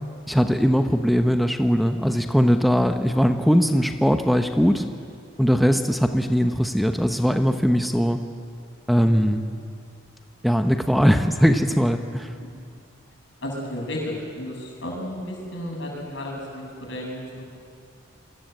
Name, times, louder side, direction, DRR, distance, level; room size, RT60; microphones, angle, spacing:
voice 1, 0.3-4.9 5.4-8.2 8.9-9.4 10.4-12.3, equal, ahead, 6 dB, 0.9 m, -20 dB
voice 2, 12.4-12.7 13.4-17.5, left 1 dB, 65° left, -1 dB, 7.4 m, -33 dB
27.5 x 23.0 x 8.0 m, 2.3 s
head